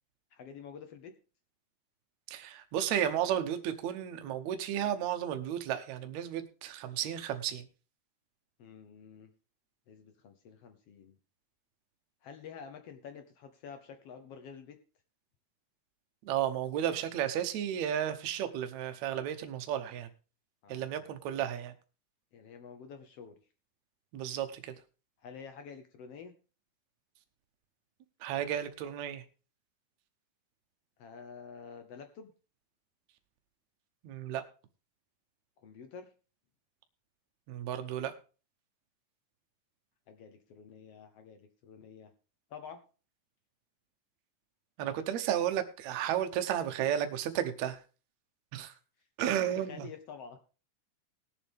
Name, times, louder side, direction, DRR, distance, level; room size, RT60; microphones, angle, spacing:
voice 1, 0.3-1.1 8.6-9.3 9.9-11.2 12.2-14.8 20.6-21.5 22.3-23.4 25.2-26.3 31.0-32.3 35.6-36.1 40.1-42.1 42.5-42.8 48.6-48.7 49.2-50.4, left 6 dB, 70° left, 7 dB, 1.5 m, -49 dB
voice 2, 2.3-7.7 16.3-20.1 20.7-21.7 24.1-24.7 28.2-29.2 34.0-34.4 37.5-38.1 44.8-47.8 48.5-48.7 49.2-49.9, right 10 dB, 70° right, 8 dB, 2.0 m, -33 dB
19.5 x 7.4 x 3.5 m, 0.35 s
omnidirectional pair, 3.8 m